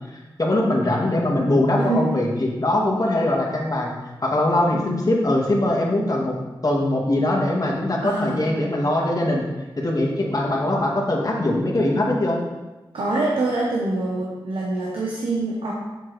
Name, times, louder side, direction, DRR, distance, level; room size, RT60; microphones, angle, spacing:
voice 1, 0.1-3.9 4.2-6.3 6.6-9.4 9.8-12.4, left 1 dB, 45° left, -2 dB, 1.9 m, -21 dB
voice 2, 8.0-8.4 12.9-15.7, right 2 dB, 90° right, -4 dB, 1.1 m, -25 dB
7.1 x 6.7 x 3.4 m, 1.2 s
cardioid pair, 40°, 9 cm